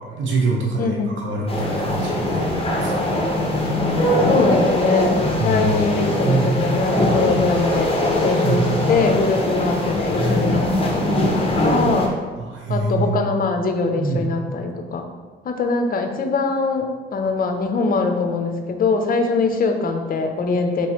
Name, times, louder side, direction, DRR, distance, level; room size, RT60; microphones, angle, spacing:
voice 1, 0.0-3.1 5.4-5.7 6.2-6.5 8.3-9.1 12.4-13.1 14.0-14.3, right 3 dB, 75° right, -2 dB, 0.9 m, -25 dB
voice 2, 0.8-1.2 4.2-7.9 8.2-8.6 8.9-11.1 11.4-12.2 12.7-15.1 15.4-16.9 17.1-20.9, left 4 dB, 45° left, 5 dB, 0.6 m, -22 dB
sound 1, 1.5-12.1, left 1 dB, 30° left, 0.9 m, -21 dB
4.9 x 3.0 x 3.0 m, 1.4 s
cardioid pair, 90°, 20 cm